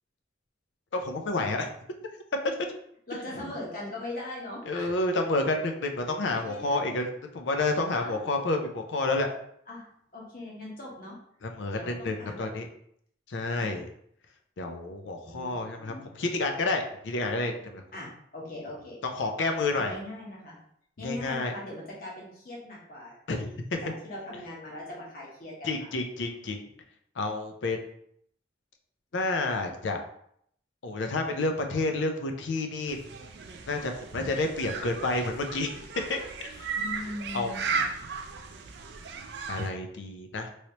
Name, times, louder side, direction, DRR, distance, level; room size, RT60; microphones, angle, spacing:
voice 1, 0.9-1.7 4.7-7.1 7.3-9.3 11.4-12.7 13.3-13.8 14.6-15.9 16.2-17.8 19.0-19.9 21.0-21.5 23.3-23.4 23.7-23.8 25.6-26.6 27.2-27.8 29.1-30.0 30.8-33.0 33.7-35.7 36.1-36.7 37.3-37.5 39.5-40.5, left 2 dB, 75° left, 4 dB, 0.5 m, -29 dB
voice 2, 3.1-4.9 6.3-6.8 8.0-8.2 9.7-9.8 10.1-11.2 11.7-12.5 13.6-13.7 15.2-16.1 17.9-19.0 19.7-20.6 21.0-23.5 23.8-25.9 36.7-37.6, left 1 dB, 50° left, -4 dB, 1.1 m, -40 dB
sound 1, 32.9-39.7, right 5 dB, 60° right, 0.4 m, -36 dB
3.1 x 3.0 x 2.8 m, 0.69 s
head